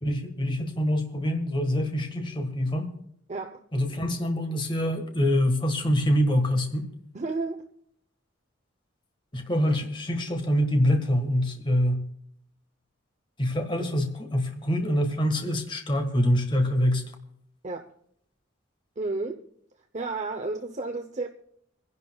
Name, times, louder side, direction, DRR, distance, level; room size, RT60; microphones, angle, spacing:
voice 1, 0.0-2.9 3.7-6.9 9.3-12.1 13.4-17.1, equal, 25° left, 1.5 m, -25 dB
voice 2, 3.3-3.6 7.1-7.6 17.6-17.9 19.0-19.4 19.9-21.3, right 3 dB, 35° right, 0.7 m, -32 dB
26.0 x 11.0 x 2.3 m
head